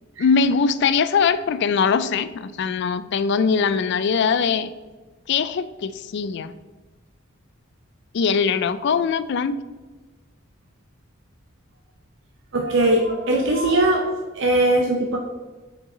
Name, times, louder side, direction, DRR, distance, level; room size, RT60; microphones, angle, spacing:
voice 1, 0.2-4.7 5.3-6.5 8.1-9.6, left 5 dB, 55° left, 14 dB, 0.4 m, -21 dB
voice 2, 12.5-15.2, right 1 dB, 60° right, 0 dB, 0.7 m, -20 dB
6.4 x 4.6 x 3.8 m, 1.2 s
head